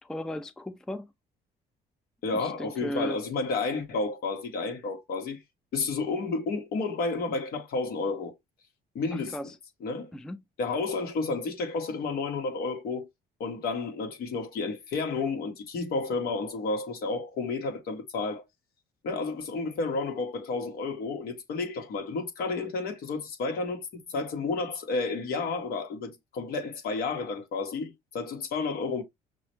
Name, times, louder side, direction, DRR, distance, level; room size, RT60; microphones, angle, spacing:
voice 1, 0.0-1.1 2.3-3.2 9.1-9.6 10.1-10.4, left 1 dB, 5° left, 0.3 m, -36 dB
voice 2, 2.2-5.4 5.7-8.3 8.9-9.4 9.8-10.1 10.6-13.1 13.4-18.4 19.0-29.0, left 3 dB, 65° left, 1.4 m, -31 dB
6.0 x 2.1 x 3.0 m
cardioid pair, 110°, 17 cm